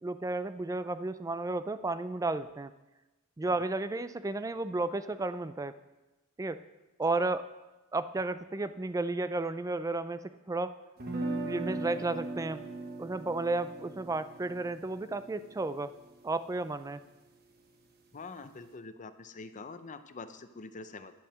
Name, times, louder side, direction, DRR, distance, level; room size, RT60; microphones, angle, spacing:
voice 1, 0.0-2.7 3.4-5.7 6.4-6.6 7.0-7.5 7.9-10.8 11.5-12.6 13.0-15.9 16.2-17.0, right 2 dB, 15° right, 13 dB, 0.3 m, -33 dB
sound 1, 11.0-17.0, right 2 dB, 45° right, 1.1 m, -39 dB
voice 2, 18.1-21.1, left 3 dB, 35° left, 10 dB, 0.6 m, -45 dB
10.5 x 5.7 x 7.4 m, 1.1 s
head